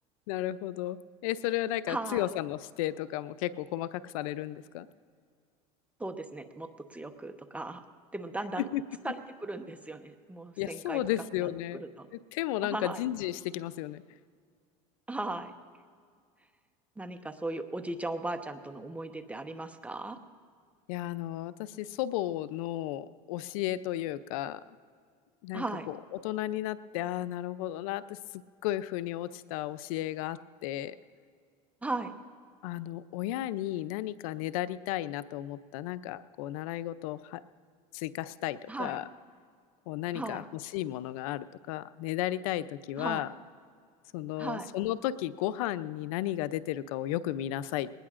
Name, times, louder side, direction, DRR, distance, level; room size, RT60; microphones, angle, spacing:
voice 1, 0.3-4.9 8.6-8.8 10.6-11.8 12.3-14.0 20.9-24.6 25.4-31.0 32.6-37.4 37.9-39.1 39.9-43.3 44.1-47.9, left 14 dB, 80° left, 16 dB, 0.5 m, -34 dB
voice 2, 1.9-2.3 6.0-7.8 8.1-8.7 9.0-11.0 11.4-11.5 11.8-12.1 12.7-13.0 15.1-15.5 17.0-20.2 25.5-25.9 31.8-32.1 38.7-39.0 40.1-40.5 43.0-43.2 44.4-44.7, right 2 dB, 10° right, 7 dB, 1.0 m, -37 dB
21.0 x 19.0 x 2.5 m, 2.1 s
supercardioid pair, 105°, 17 cm